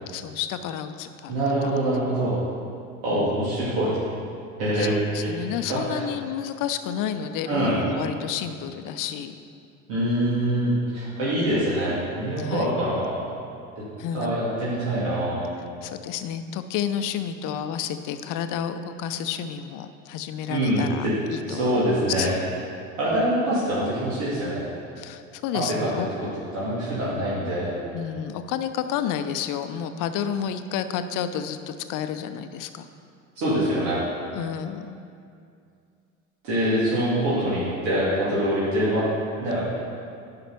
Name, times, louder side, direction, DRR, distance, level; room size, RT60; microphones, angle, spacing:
voice 1, 0.1-1.3 1.6-1.7 3.1-3.4 4.8-9.4 12.4-12.8 14.0-14.3 15.8-21.8 22.2-22.3 25.0-26.1 27.9-32.9 34.3-35.0, left 9 dB, 50° left, 10 dB, 0.7 m, -31 dB
voice 2, 1.3-2.4 3.0-4.0 4.6-4.9 5.2-5.3 5.6-6.0 7.4-7.8 9.9-13.2 14.1-15.4 20.5-21.2 21.5-22.3 23.0-24.6 25.5-25.9 26.5-27.7 33.4-34.0 36.4-39.0 39.4-39.6, right 1 dB, 65° right, -9 dB, 2.6 m, -24 dB
10.0 x 5.9 x 5.4 m, 2.4 s
hypercardioid pair, 70°, 41 cm